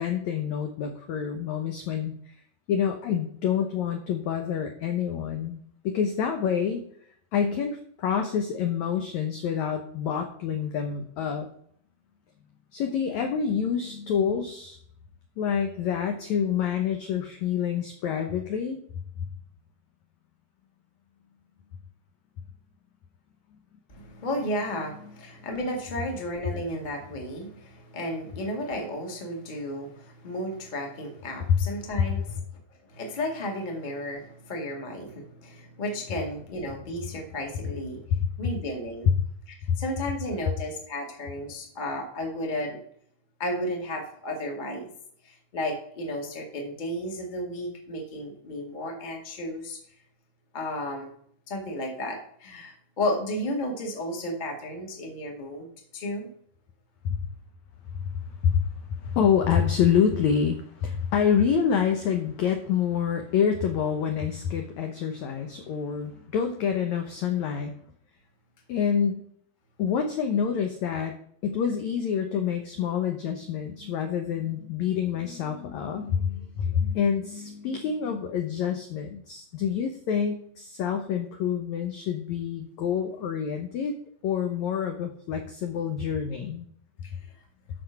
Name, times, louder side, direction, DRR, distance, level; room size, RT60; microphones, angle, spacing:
voice 1, 0.0-2.1 2.7-6.8 7.3-11.5 12.7-14.8 15.4-18.8 31.5-31.6 39.1-39.2 57.0-57.2 58.1-58.6 59.0-67.7 68.7-69.2 69.8-71.2 71.4-84.0 84.2-86.7, left 7 dB, 75° left, 5 dB, 1.7 m, -27 dB
voice 2, 23.9-32.4 32.9-38.0 38.4-39.1 39.8-42.8 43.4-44.9 45.2-49.8 50.5-51.1 51.5-55.7 55.9-56.3 87.0-87.1, left 1 dB, 20° left, 1 dB, 1.2 m, -33 dB
12.5 x 4.4 x 5.7 m, 0.64 s
omnidirectional pair, 4.3 m